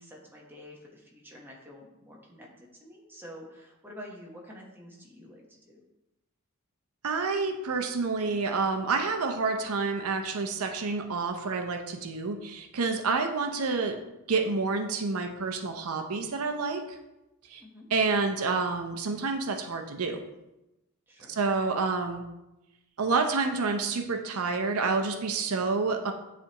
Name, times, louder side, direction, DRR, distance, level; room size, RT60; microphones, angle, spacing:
voice 1, 0.0-5.8 17.6-17.9 21.1-21.4, equal, 10° right, -2 dB, 1.1 m, -48 dB
voice 2, 7.0-14.0 14.3-16.8 17.5-17.6 17.9-20.2 21.3-22.2 23.0-26.1, right 4 dB, 90° right, 5 dB, 0.6 m, -28 dB
9.9 x 3.4 x 2.9 m, 0.95 s
head